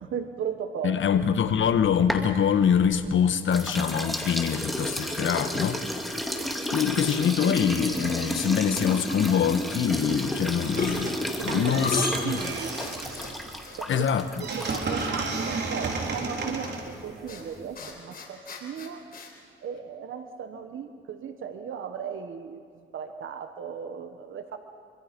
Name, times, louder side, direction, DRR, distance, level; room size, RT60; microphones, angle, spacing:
voice 1, 0.0-1.0 11.3-12.8 13.8-14.0 14.4-19.1 19.6-22.6 22.9-24.6, right 7 dB, 70° right, 7 dB, 1.4 m, -36 dB
voice 2, 0.8-5.8 6.7-11.2 11.4-12.3 13.9-14.4, left 8 dB, 65° left, 10 dB, 1.4 m, -24 dB
sound 1, 1.5-3.1 3.5-15.3, left 1 dB, ahead, 2.5 m, -32 dB
sound 2, 10.2-10.4 10.7-12.2 12.7-13.3 13.6-13.8 14.6-15.1 15.4-15.5 17.3-17.4 17.8-19.3, left 4 dB, 45° left, 4.1 m, -35 dB
sound 3, 10.7-11.2 11.5-17.7, right 3 dB, 55° right, 3.8 m, -33 dB
25.5 x 25.0 x 5.4 m, 2.2 s
cardioid pair, 100°, 21 cm